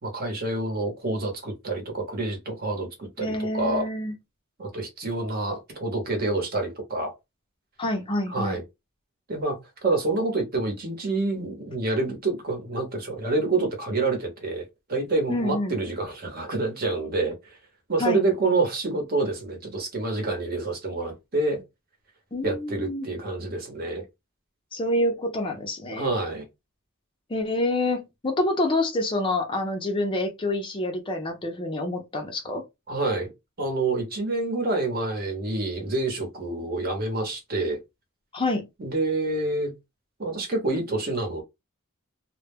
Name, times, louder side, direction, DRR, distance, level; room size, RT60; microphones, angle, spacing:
voice 1, 0.0-3.9 4.6-7.1 8.3-8.6 9.3-17.6 17.9-21.6 22.4-24.0 25.9-26.5 32.9-33.3 33.6-37.8 38.8-39.7 40.2-41.4, right 2 dB, 45° right, 0.9 m, -27 dB
voice 2, 3.2-4.1 7.8-8.6 15.3-15.8 18.0-18.2 22.3-23.1 24.7-26.1 27.3-32.6 38.3-38.6, left 1 dB, 25° left, 0.5 m, -27 dB
2.1 x 2.1 x 3.4 m
head